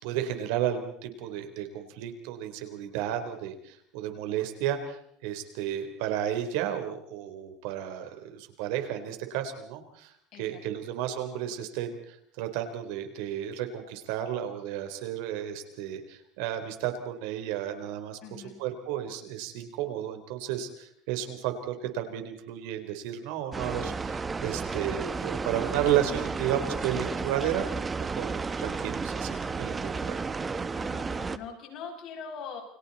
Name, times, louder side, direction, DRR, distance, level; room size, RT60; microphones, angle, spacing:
voice 1, 0.0-18.2 18.6-27.7 28.0-30.2, right 10 dB, 75° right, 7 dB, 4.0 m, -33 dB
voice 2, 18.2-18.5 30.7-32.6, left 6 dB, 50° left, 1 dB, 7.9 m, -42 dB
sound 1, 23.5-31.4, right 4 dB, 15° right, 1.1 m, -32 dB
29.5 x 24.0 x 4.3 m, 0.68 s
cardioid pair, 145°, 0 cm